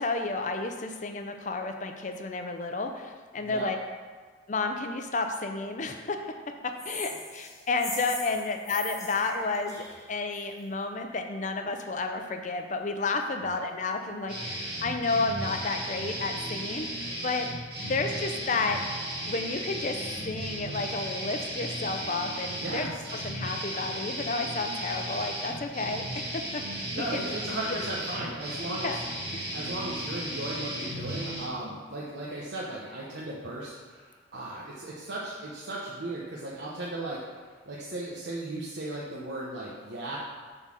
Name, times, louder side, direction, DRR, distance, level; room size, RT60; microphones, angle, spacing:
voice 1, 0.0-3.8 4.5-6.2 6.6-17.5 17.8-20.0 20.2-26.1 26.3-27.2 27.7-27.8 28.7-29.0 29.3-29.5, left 3 dB, 40° left, 5 dB, 0.6 m, -31 dB
voice 2, 3.4-3.7 13.4-13.6 22.5-23.0 26.9-29.0 29.5-37.2 37.7-40.2, right 2 dB, 70° right, -6 dB, 1.0 m, -36 dB
sound 1, 6.8-10.6, left 3 dB, 15° left, 1.2 m, -40 dB
sound 2, 14.3-31.5, right 1 dB, 55° right, 2.1 m, -35 dB
7.5 x 4.0 x 6.3 m, 1.5 s
head